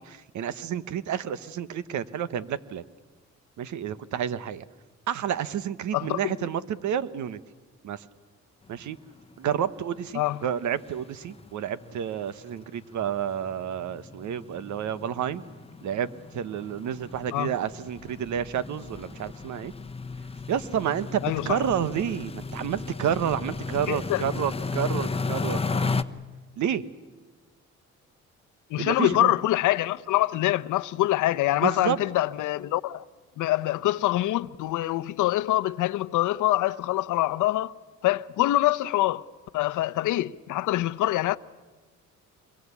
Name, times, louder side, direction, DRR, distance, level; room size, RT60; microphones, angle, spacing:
voice 1, 0.0-2.8 3.6-4.6 5.1-7.4 7.8-8.1 8.7-9.0 9.4-15.4 15.8-16.1 16.3-19.7 20.5-26.0 26.6-26.8 28.8-29.3 31.6-32.0, right 9 dB, 70° right, 1.2 m, -30 dB
voice 2, 5.9-6.3 10.1-10.4 17.3-17.5 21.2-21.6 23.9-24.2 28.7-33.0 33.4-37.8 38.0-39.2 39.5-41.4, left 15 dB, 85° left, 0.8 m, -25 dB
sound 1, 8.9-9.0 9.3-9.5 9.8-9.9 10.2-26.0, left 4 dB, 20° left, 1.0 m, -35 dB
26.0 x 22.5 x 8.3 m
cardioid pair, 90°, 30 cm